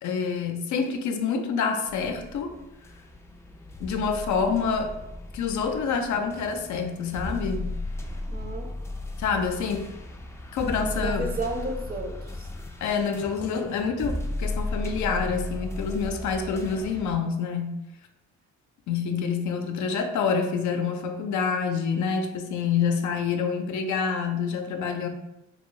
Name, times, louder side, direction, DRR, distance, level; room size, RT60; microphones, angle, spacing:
voice 1, 0.0-2.5 3.8-5.0 5.3-7.7 9.2-9.9 10.5-11.3 12.8-17.8 18.9-25.1, left 5 dB, 70° left, 5 dB, 0.5 m, -27 dB
sound 1, 1.9-17.2, left 2 dB, 10° left, 0.3 m, -35 dB
voice 2, 8.3-8.7 10.9-12.5, right 2 dB, 30° right, 2 dB, 0.6 m, -32 dB
2.9 x 2.6 x 3.0 m, 0.87 s
cardioid pair, 90°, 30 cm